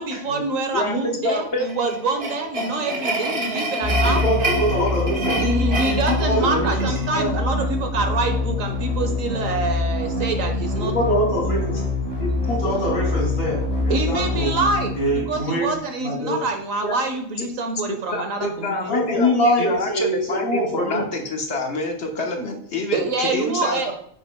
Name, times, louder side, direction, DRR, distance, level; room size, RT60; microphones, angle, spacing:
voice 1, 0.0-4.2 5.4-10.9 13.9-18.9 22.9-23.9, right 3 dB, 80° right, 5 dB, 1.6 m, -26 dB
voice 2, 0.7-1.7 16.8-17.0 18.1-19.3 19.6-23.9, left 2 dB, 55° left, 3 dB, 1.5 m, -27 dB
sound 1, 1.6-7.1, right 2 dB, 50° right, 1.4 m, -28 dB
sound 2, 3.8-15.7, left 2 dB, 10° left, 2.8 m, -25 dB
voice 3, 4.0-5.4 5.7-7.3 10.8-11.8 12.2-14.5 14.9-15.7 16.0-16.3 18.9-21.0, equal, 75° left, -2 dB, 3.3 m, -24 dB
9.1 x 6.9 x 2.3 m, 0.68 s
omnidirectional pair, 1.4 m